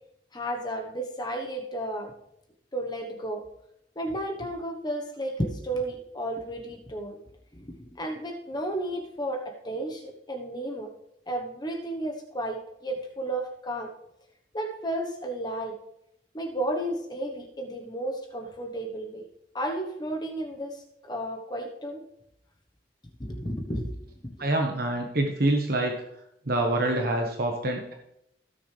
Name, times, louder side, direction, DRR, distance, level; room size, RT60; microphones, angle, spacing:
voice 1, 0.3-2.1 2.7-3.4 4.0-7.2 7.5-10.9 11.3-13.9 14.5-15.7 16.3-19.2 19.5-20.8 21.1-22.0 23.2-24.0 24.2-24.3, right 1 dB, 25° left, 2 dB, 1.1 m, -33 dB
voice 2, 24.4-26.0 26.5-27.9, right 1 dB, 60° right, 2 dB, 1.2 m, -26 dB
16.0 x 6.4 x 3.3 m, 0.78 s
head